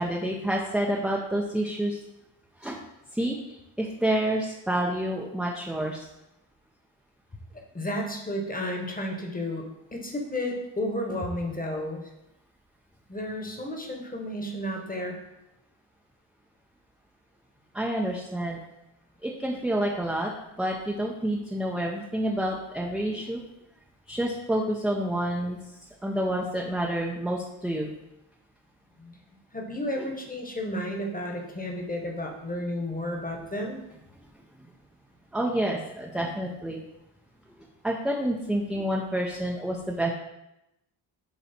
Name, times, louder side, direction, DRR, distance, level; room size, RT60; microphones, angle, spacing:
voice 1, 0.0-2.0 2.6-2.8 3.1-3.4 3.8-6.1 17.7-18.6 19.2-20.3 20.6-23.4 24.1-25.6 26.0-27.9 30.0-30.1 35.3-36.8 37.8-40.1, right 1 dB, ahead, -1 dB, 0.7 m, -28 dB
voice 2, 7.7-12.0 13.1-15.2 29.0-29.2 29.5-33.8, left 1 dB, 15° left, 2 dB, 1.3 m, -32 dB
7.0 x 3.1 x 4.4 m, 0.89 s
cardioid pair, 70°, 49 cm